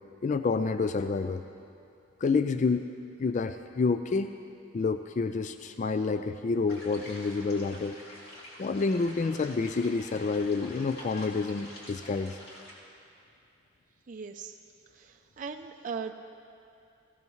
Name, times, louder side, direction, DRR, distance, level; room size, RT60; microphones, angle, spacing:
voice 1, 0.2-1.4 2.2-2.9 3.2-4.3 4.7-8.0 8.6-12.4, left 4 dB, 35° left, 9 dB, 0.3 m, -28 dB
sound 1, 6.7-12.7, left 1 dB, 50° left, 2.9 m, -47 dB
voice 2, 14.1-14.6 14.9-16.1, right 5 dB, 40° right, 4 dB, 0.4 m, -39 dB
20.0 x 15.5 x 3.1 m, 2.6 s
head